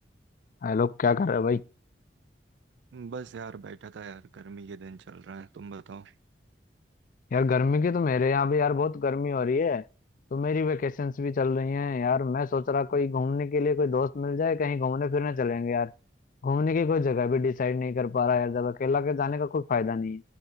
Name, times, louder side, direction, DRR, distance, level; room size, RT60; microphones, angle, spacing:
voice 1, 0.6-1.6 7.3-9.8 10.3-15.9 16.4-20.2, left 5 dB, 50° left, 0.4 m, -26 dB
voice 2, 2.9-6.1, right 5 dB, 80° right, 0.4 m, -42 dB
10.5 x 8.0 x 3.7 m
head